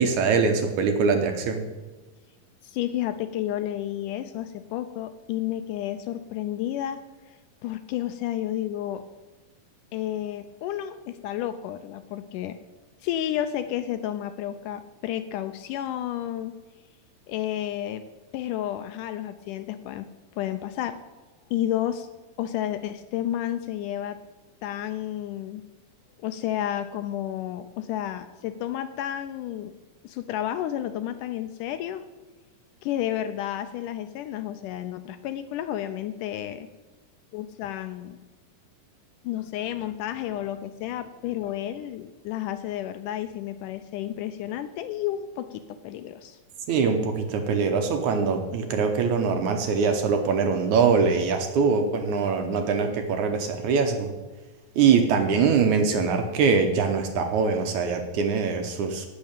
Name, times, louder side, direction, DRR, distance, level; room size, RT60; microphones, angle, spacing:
voice 1, 0.0-1.6 46.7-54.1 54.8-59.1, right 5 dB, 70° right, 5 dB, 2.0 m, -23 dB
voice 2, 2.6-7.0 7.3-9.0 9.9-12.6 13.0-16.6 17.3-18.1 18.3-21.0 21.5-22.1 22.4-24.2 24.6-25.6 26.2-29.8 30.0-32.1 32.8-36.7 37.3-38.2 39.2-46.4, left 12 dB, 80° left, 10 dB, 1.9 m, -31 dB
12.0 x 5.7 x 8.9 m, 1.2 s
omnidirectional pair, 4.0 m